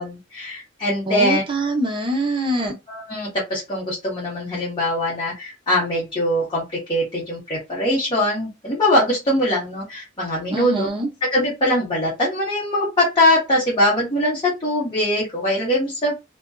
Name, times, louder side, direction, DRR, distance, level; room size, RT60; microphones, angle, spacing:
voice 1, 0.0-1.4 2.6-6.6 6.9-10.9 11.3-16.2, left 1 dB, 25° left, 0.9 m, -22 dB
voice 2, 1.1-2.7 10.5-11.1, right 1 dB, 25° right, 0.7 m, -23 dB
2.5 x 2.2 x 2.3 m
head